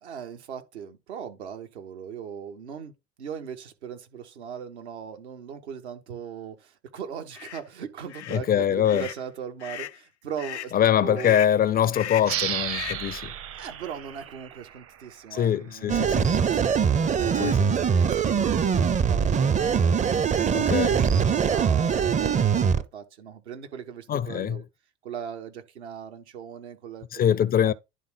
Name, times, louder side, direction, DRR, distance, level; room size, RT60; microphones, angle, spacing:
voice 1, 0.0-2.9 3.2-10.7 11.0-11.4 13.6-16.7 16.9-24.6 25.0-27.7, right 8 dB, 80° right, 1.3 m, -39 dB
sound 1, 7.3-7.6 8.1-8.4 8.8-9.2 9.6-10.0 10.4-10.7 11.2-11.6 11.9-12.4 12.7-13.1, left 11 dB, 90° left, 0.5 m, -37 dB
voice 2, 8.3-9.0 10.7-13.3 15.3-16.3 17.4-17.5 20.5-21.0 24.1-24.6 27.1-27.7, left 9 dB, 30° left, 0.4 m, -23 dB
sound 2, 12.2-15.5, right 10 dB, 40° right, 0.9 m, -34 dB
sound 3, 15.9-22.8, right 7 dB, 20° right, 0.5 m, -22 dB
11.0 x 3.7 x 3.8 m
hypercardioid pair, 65°, 33 cm